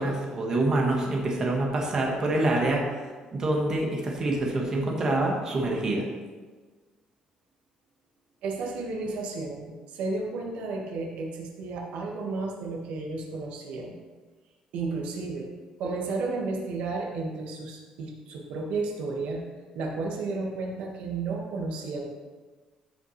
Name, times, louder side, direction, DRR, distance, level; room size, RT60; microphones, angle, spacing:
voice 1, 0.0-2.9 3.3-6.0, right 2 dB, 30° right, -1 dB, 1.3 m, -26 dB
voice 2, 8.4-14.0 14.7-15.5 15.8-19.4 19.7-22.1, right 3 dB, 80° right, 0 dB, 1.5 m, -32 dB
14.0 x 5.6 x 3.2 m, 1.4 s
cardioid pair, 180°, 2 cm